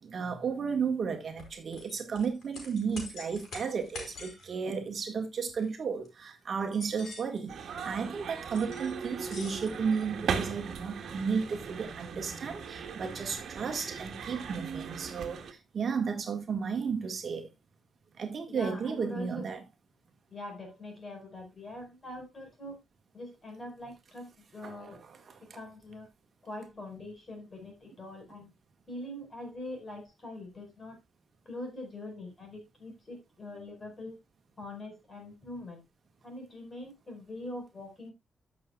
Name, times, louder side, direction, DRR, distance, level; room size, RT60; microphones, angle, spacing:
voice 1, 0.0-17.5 18.2-19.6 24.6-25.4, right 6 dB, 50° right, 1.5 m, -33 dB
sound 1, 1.4-4.5 5.5-5.7 6.0-6.1 6.6-7.5 8.5-8.9 9.2-10.8, left 3 dB, 80° left, 4.4 m, -46 dB
sound 2, 7.5-15.5, right 6 dB, 75° right, 1.5 m, -38 dB
voice 2, 18.5-19.5 20.3-22.8 23.1-25.0 25.5-26.1 26.4-28.5 28.9-31.0 31.4-34.2 34.6-35.8 36.2-38.1, left 1 dB, 30° left, 4.5 m, -43 dB
15.0 x 6.4 x 2.3 m
wide cardioid pair, 135°, 0 cm